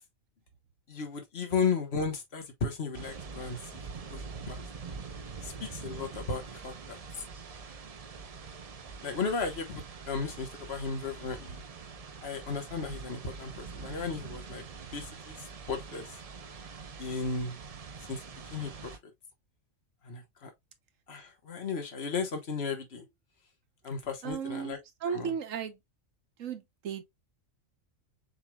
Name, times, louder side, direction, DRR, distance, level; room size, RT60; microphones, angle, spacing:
voice 1, 0.9-3.8 4.1-4.6 5.4-7.0 9.0-11.6 12.2-14.6 14.9-16.2 17.0-17.6 18.1-18.2 18.5-19.0 20.0-20.5 21.1-23.0 23.8-24.8 25.1-25.3, left 5 dB, 50° left, 1.5 m, -35 dB
sound 1, 2.9-19.0, right 5 dB, 45° right, 0.5 m, -44 dB
voice 2, 24.2-25.8 26.4-27.0, right 7 dB, 75° right, 1.3 m, -35 dB
6.6 x 3.3 x 2.3 m
omnidirectional pair, 1.4 m